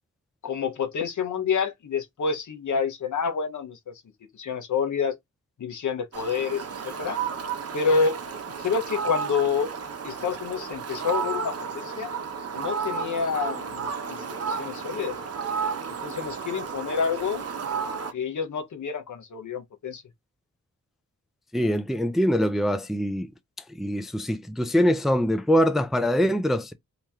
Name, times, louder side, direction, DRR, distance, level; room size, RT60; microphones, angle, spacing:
voice 1, 0.4-3.9 4.4-5.2 5.6-7.2 7.7-8.2 8.6-9.7 10.0-12.1 12.5-15.2 16.0-17.4 18.1-20.0, left 5 dB, 80° left, 1.0 m, -28 dB
Fowl, 6.1-18.1, right 6 dB, 55° right, 0.7 m, -32 dB
voice 2, 21.5-23.3 23.8-26.7, equal, ahead, 0.3 m, -23 dB
3.0 x 2.9 x 3.5 m
wide cardioid pair, 140°, 30 cm